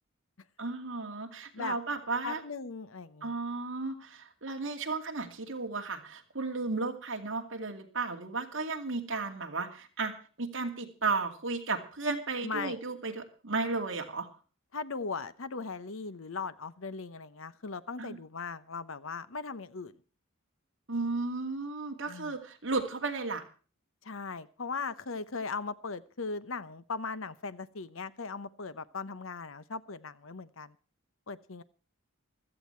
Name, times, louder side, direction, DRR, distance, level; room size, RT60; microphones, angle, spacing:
voice 1, 0.6-2.4 3.2-14.3 18.0-18.2 20.9-23.4, right 3 dB, 60° right, 3 dB, 2.5 m, -34 dB
voice 2, 2.2-3.3 12.4-12.8 14.7-20.0 22.1-22.4 24.0-30.8 31.3-31.6, left 4 dB, 70° left, 14 dB, 0.9 m, -38 dB
16.0 x 13.5 x 4.5 m, 0.38 s
head